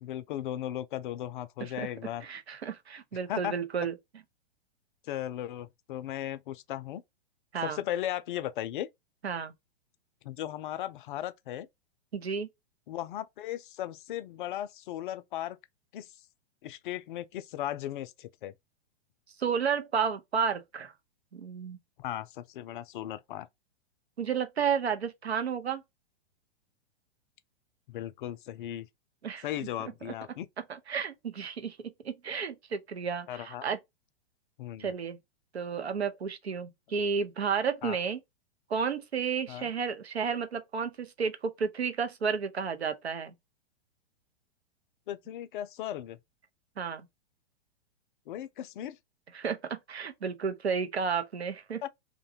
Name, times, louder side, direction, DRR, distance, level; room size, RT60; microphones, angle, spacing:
voice 1, 0.0-2.2 3.3-3.6 5.1-7.0 7.6-8.9 10.2-11.7 12.9-15.6 15.9-16.1 16.6-18.5 22.0-23.5 27.9-28.9 29.4-30.5 33.3-33.7 34.6-34.9 37.8-38.0 39.5-39.7 45.1-46.2 48.3-49.0 51.8-51.9, left 12 dB, 55° left, 0.4 m, -36 dB
voice 2, 2.2-3.9 7.5-7.8 9.2-9.5 12.1-12.5 19.4-20.9 21.3-21.8 24.2-25.8 29.2-29.4 30.1-30.2 30.7-33.8 34.8-35.2 35.5-38.2 38.7-43.3 46.8-47.1 49.3-51.8, right 6 dB, 90° right, 0.6 m, -32 dB
2.6 x 2.2 x 2.6 m
figure-of-eight pair, 110°, 31 cm